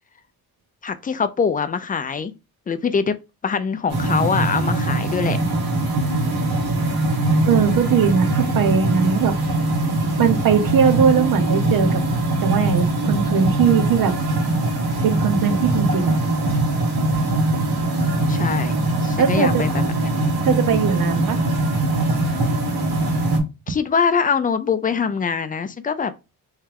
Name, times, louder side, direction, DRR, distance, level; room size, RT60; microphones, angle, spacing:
voice 1, 0.8-2.3 2.7-3.2 3.4-5.4 12.9-13.0 18.3-19.9 23.7-26.1, left 6 dB, 25° left, 0.3 m, -23 dB
sound 1, 3.9-23.4, right 2 dB, 85° right, 1.4 m, -21 dB
voice 2, 7.4-9.4 10.2-12.0 12.4-14.2 15.0-16.1 19.2-19.6 20.4-21.4, right 7 dB, 65° right, 0.8 m, -20 dB
3.4 x 3.2 x 3.3 m
wide cardioid pair, 150°, 37 cm